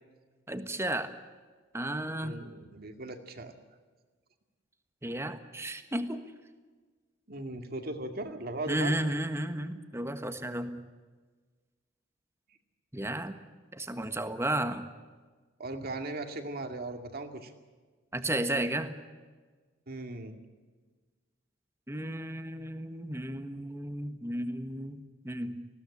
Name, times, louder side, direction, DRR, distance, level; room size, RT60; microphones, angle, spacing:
voice 1, 0.5-1.1 1.7-2.4 5.0-6.2 8.7-10.8 12.9-13.3 13.7-14.9 18.1-18.9 21.9-25.7, right 1 dB, 15° right, 9 dB, 1.5 m, -33 dB
voice 2, 2.2-3.5 7.3-8.9 10.4-10.5 15.6-17.5 19.9-20.4, right 2 dB, 50° right, 6 dB, 2.3 m, -38 dB
20.0 x 16.5 x 9.9 m, 1.4 s
head